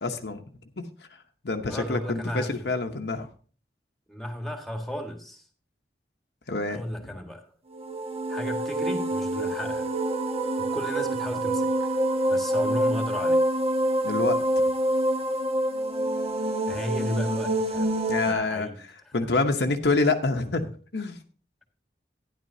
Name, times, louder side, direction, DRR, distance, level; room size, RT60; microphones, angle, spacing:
voice 1, 0.0-0.4 0.8-0.9 1.4-3.3 6.5-6.8 14.0-14.6 18.1-18.7 19.1-21.2, left 3 dB, 70° left, 0.9 m, -27 dB
voice 2, 1.6-2.7 4.1-5.4 6.7-7.5 8.3-9.9 10.6-11.9 12.3-13.4 16.7-17.9 18.2-18.8, equal, ahead, 1.6 m, -34 dB
sound 1, 7.7-18.3, right 1 dB, 35° right, 1.1 m, -26 dB
12.5 x 10.5 x 2.7 m
head